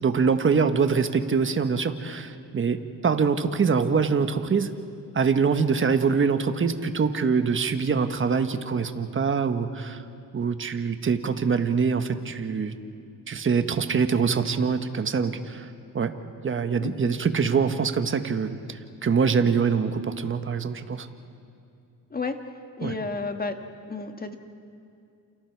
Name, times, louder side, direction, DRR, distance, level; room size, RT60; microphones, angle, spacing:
voice 1, 0.0-4.7 5.1-10.0 10.3-12.7 13.3-15.7 15.9-16.1 16.4-21.1 22.8-22.9, right 5 dB, 35° right, 8 dB, 1.4 m, -24 dB
voice 2, 16.8-17.1 22.1-22.3 22.8-23.6 23.9-24.4, left 4 dB, 25° left, 6 dB, 1.8 m, -31 dB
29.5 x 28.5 x 4.7 m, 2.5 s
cardioid pair, 105°, 35 cm